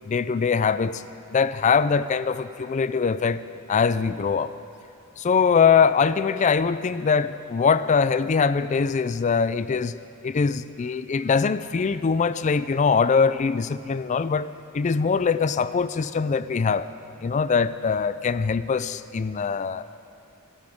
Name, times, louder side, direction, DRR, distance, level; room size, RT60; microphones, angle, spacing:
voice 1, 0.1-1.0 1.3-3.4 3.7-4.5 5.2-9.9 10.2-14.5 14.7-16.9 17.2-19.8, left 5 dB, 30° left, 14 dB, 0.3 m, -22 dB
24.0 x 12.5 x 3.6 m, 2.7 s
head